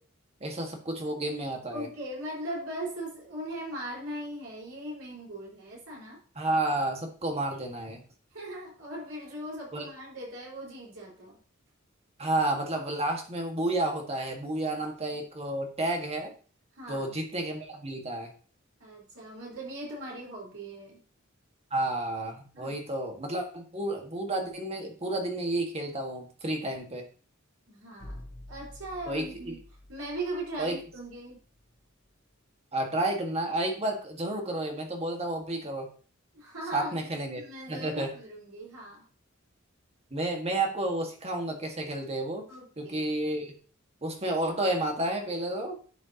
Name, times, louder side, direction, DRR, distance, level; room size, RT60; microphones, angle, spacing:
voice 1, 0.4-1.9 6.3-8.0 9.7-9.9 12.2-16.3 16.9-18.3 21.7-27.0 29.1-29.5 30.6-30.8 32.7-35.9 36.7-37.4 37.7-38.1 40.1-42.5 42.8-43.5 44.0-45.8, right 1 dB, 30° right, 2 dB, 1.8 m, -31 dB
voice 2, 1.7-6.2 8.3-11.4 14.7-14.8 16.7-17.1 18.8-21.0 22.5-22.7 27.7-29.6 29.9-31.4 36.3-37.1 37.4-39.0 42.5-43.1, right 1 dB, 85° right, -4 dB, 4.8 m, -39 dB
sound 1, 28.0-31.8, left 1 dB, 40° left, 4.2 m, -49 dB
11.0 x 6.7 x 2.9 m, 0.41 s
head